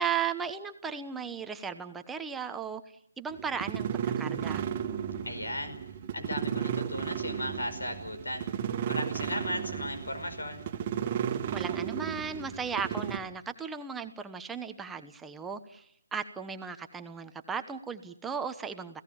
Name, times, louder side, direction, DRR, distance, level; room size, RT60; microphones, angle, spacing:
voice 1, 0.0-2.8 3.2-4.7 11.5-19.0, right 6 dB, 10° right, 7 dB, 1.0 m, -36 dB
sound 1, 3.3-13.2, right 8 dB, 35° right, 1.7 m, -34 dB
voice 2, 5.2-5.8 6.1-8.5 8.9-10.6, left 1 dB, 85° left, 8 dB, 5.3 m, -36 dB
29.5 x 17.0 x 7.2 m, 0.70 s
figure-of-eight pair, 150°, 0 cm